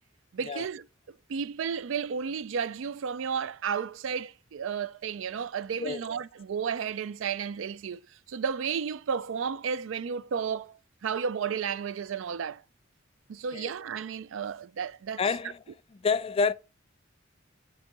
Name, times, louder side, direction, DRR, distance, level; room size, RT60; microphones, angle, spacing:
voice 1, 0.3-0.9 1.3-8.0 8.3-12.6 13.3-15.2, right 6 dB, 70° right, 0.4 m, -32 dB
voice 2, 15.2-15.6 15.9-16.5, left 5 dB, 30° left, 0.4 m, -28 dB
8.1 x 2.9 x 5.3 m
head